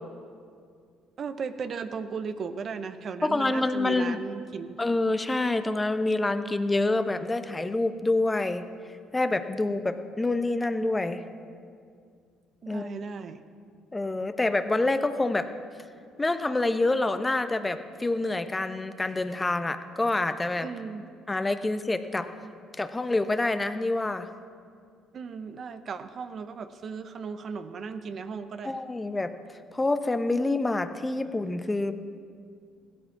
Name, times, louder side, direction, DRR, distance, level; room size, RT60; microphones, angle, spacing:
voice 1, 1.2-4.8 12.6-13.4 20.6-21.0 22.4-22.5 25.1-28.8, right 5 dB, 50° right, 10 dB, 0.8 m, -36 dB
voice 2, 3.2-4.2 4.8-8.6 9.1-11.2 12.7-12.9 13.9-15.5 16.2-20.7 21.3-22.3 22.8-24.3 28.6-29.3 29.7-31.9, left 2 dB, 20° left, 9 dB, 1.0 m, -27 dB
16.5 x 13.0 x 6.0 m, 2.3 s
hypercardioid pair, 60°, 0 cm